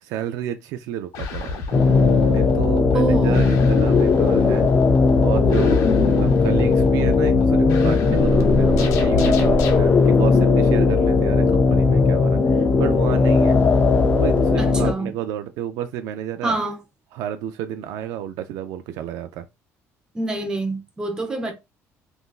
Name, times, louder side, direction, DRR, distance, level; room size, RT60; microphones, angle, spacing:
voice 1, 0.0-1.8 2.3-4.7 5.2-13.6 14.0-16.6 17.1-19.5, right 11 dB, 90° right, 0.3 m, -30 dB
sound 1, 1.1-9.9, left 2 dB, 75° left, 0.7 m, -29 dB
sound 2, 1.7-14.9, left 4 dB, 30° left, 0.4 m, -17 dB
voice 2, 2.9-3.5 14.6-15.1 16.4-16.8 20.1-21.5, right 3 dB, 15° right, 0.7 m, -26 dB
3.7 x 2.5 x 2.3 m
cardioid pair, 150°, 6 cm